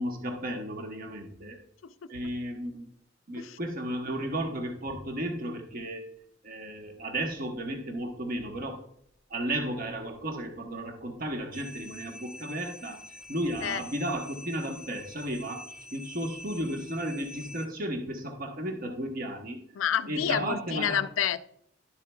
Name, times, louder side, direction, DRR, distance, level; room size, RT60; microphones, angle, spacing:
voice 1, 0.0-1.6 2.1-2.9 3.3-6.1 6.4-8.8 9.3-19.6 20.1-21.0, right 1 dB, 50° right, 3 dB, 1.1 m, -34 dB
sound 1, 11.5-17.7, left 1 dB, 5° right, 0.5 m, -46 dB
voice 2, 19.7-21.4, left 8 dB, 85° left, 14 dB, 0.4 m, -29 dB
11.5 x 7.3 x 2.2 m, 0.70 s
head